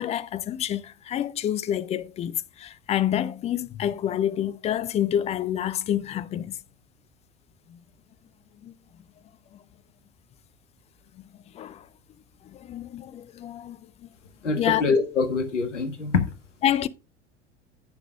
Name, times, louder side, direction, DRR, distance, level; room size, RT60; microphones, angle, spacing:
voice 1, 0.0-6.6 7.7-7.8 8.6-8.7 9.5-9.6 11.1-11.2 11.5-11.9 12.4-14.1 14.4-14.8 16.6-16.9, left 11 dB, 20° left, 0.4 m, -28 dB
voice 2, 14.4-16.2, left 4 dB, 75° left, 1.4 m, -24 dB
16.0 x 6.0 x 2.3 m
figure-of-eight pair, 80°, 36 cm